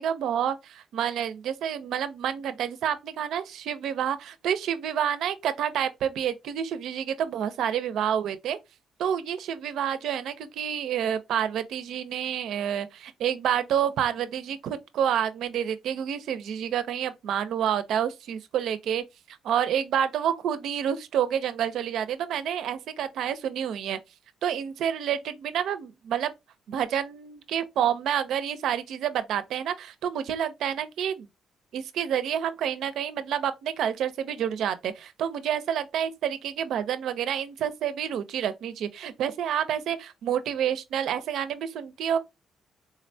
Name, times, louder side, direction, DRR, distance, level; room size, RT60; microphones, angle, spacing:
voice 1, 0.0-8.6 9.0-24.0 24.4-26.3 26.7-31.3 31.7-42.2, right 9 dB, 75° right, 0.4 m, -28 dB
3.8 x 2.1 x 2.6 m
cardioid pair, 90°, 0 cm